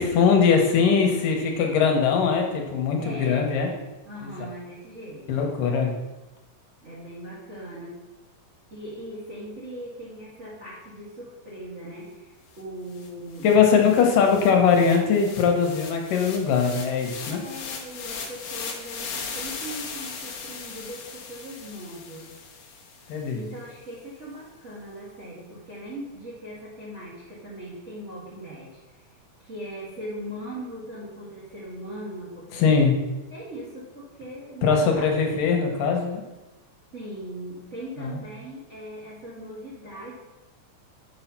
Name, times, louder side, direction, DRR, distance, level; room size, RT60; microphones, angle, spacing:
voice 1, 0.0-3.7 4.2-4.3 5.3-5.9 13.4-17.4 23.1-23.4 32.6-32.9 34.6-36.2 38.0-38.2, left 6 dB, 80° left, 2 dB, 2.7 m, -21 dB
voice 2, 3.0-3.5 4.0-5.4 6.8-8.0 8.7-13.8 17.2-22.3 23.3-29.1 29.4-32.8 33.3-35.5 36.9-40.2, equal, 40° right, -9 dB, 1.1 m, -39 dB
sound 1, 12.6-12.7 12.9-23.3, left 5 dB, 65° left, 2.0 m, -38 dB
6.5 x 5.6 x 5.7 m, 1.1 s
omnidirectional pair, 3.9 m